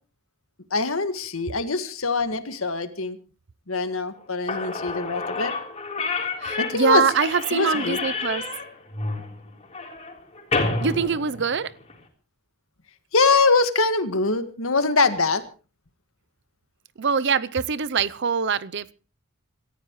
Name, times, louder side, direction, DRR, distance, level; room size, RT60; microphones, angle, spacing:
voice 1, 0.7-3.2 3.7-5.5 6.6-7.0 7.5-8.0 13.1-15.4, left 3 dB, 70° left, 1.8 m, -23 dB
Slam / Squeak, 4.2-4.3 4.5-12.0, left 3 dB, 30° left, 3.8 m, -30 dB
voice 2, 6.4-8.4 10.8-11.7 17.0-18.9, right 6 dB, 55° right, 0.7 m, -23 dB
26.5 x 14.5 x 3.1 m
head